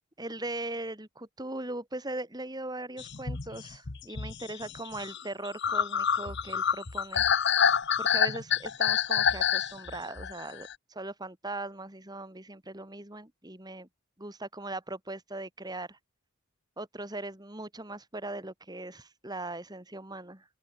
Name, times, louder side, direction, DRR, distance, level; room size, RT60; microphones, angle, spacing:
voice 1, 0.2-7.5 8.0-13.9 14.2-16.0 16.8-20.4, right 2 dB, 20° right, 2.8 m, -39 dB
sound 1, 3.0-10.7, left 7 dB, 50° left, 1.1 m, -28 dB
open air
head